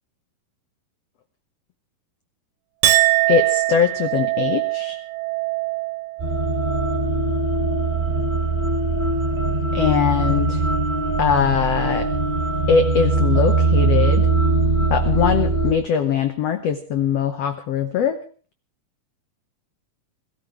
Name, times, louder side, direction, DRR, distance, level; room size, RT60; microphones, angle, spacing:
Chink clink, 2.8-9.4 9.8-10.3, right 18 dB, 70° right, 2.4 m, -24 dB
voice 1, 3.3-5.0 9.7-10.6 11.2-12.1 12.7-14.3 14.9-18.2, left 7 dB, 80° left, 9 dB, 1.4 m, -21 dB
sound 1, 6.2-15.7, right 3 dB, 20° right, 2.2 m, -21 dB
21.5 x 13.5 x 4.6 m, 0.41 s
omnidirectional pair, 4.1 m